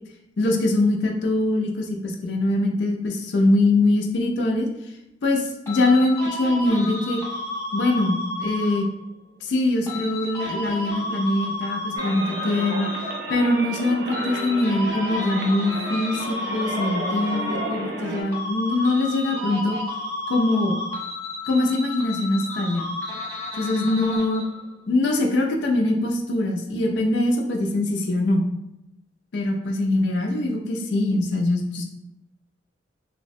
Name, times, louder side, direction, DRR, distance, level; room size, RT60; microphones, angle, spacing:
voice 1, 0.4-4.7 5.2-7.2 7.7-8.9 9.4-12.9 13.3-19.8 20.3-20.8 21.4-22.9 23.6-24.4 24.9-28.4 29.3-31.9, left 2 dB, 65° left, 1 dB, 0.4 m, -23 dB
sound 1, 5.7-9.0 9.9-13.7 14.1-18.0 18.3-24.7, left 1 dB, 15° left, 0.7 m, -32 dB
sound 2, 12.0-18.2, right 1 dB, 60° right, 0.5 m, -32 dB
3.2 x 2.0 x 2.6 m, 0.88 s
head